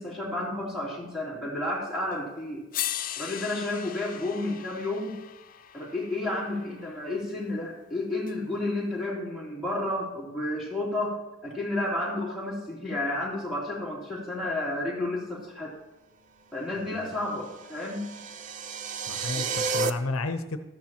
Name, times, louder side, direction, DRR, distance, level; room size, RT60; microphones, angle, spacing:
voice 1, 0.0-2.6 3.2-5.2 5.7-15.7 16.5-18.1 19.4-19.5, left 2 dB, ahead, -6 dB, 3.1 m, -31 dB
sound 1, 2.1-2.2 2.7-6.9 8.3-8.4, left 12 dB, 40° left, 0.4 m, -38 dB
voice 2, 16.8-17.1 19.1-20.6, left 3 dB, 85° left, 8 dB, 0.8 m, -32 dB
sound 2, 17.3-19.9, right 5 dB, 35° right, 0.4 m, -31 dB
14.0 x 10.5 x 2.9 m, 1.0 s
head